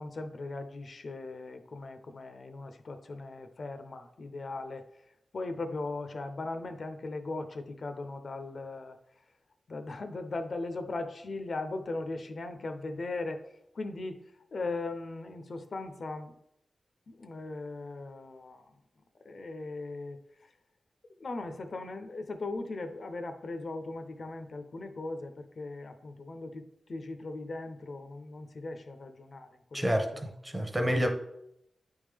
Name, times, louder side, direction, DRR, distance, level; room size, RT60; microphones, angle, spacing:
voice 1, 0.0-4.8 5.3-9.0 9.7-13.4 13.7-14.2 14.5-16.3 17.1-18.6 19.2-20.2 21.2-29.8 30.5-30.7, left 3 dB, 55° left, 0.5 m, -38 dB
voice 2, 29.7-31.1, equal, 15° right, 0.7 m, -29 dB
9.4 x 3.5 x 3.4 m
wide cardioid pair, 145°, 0 cm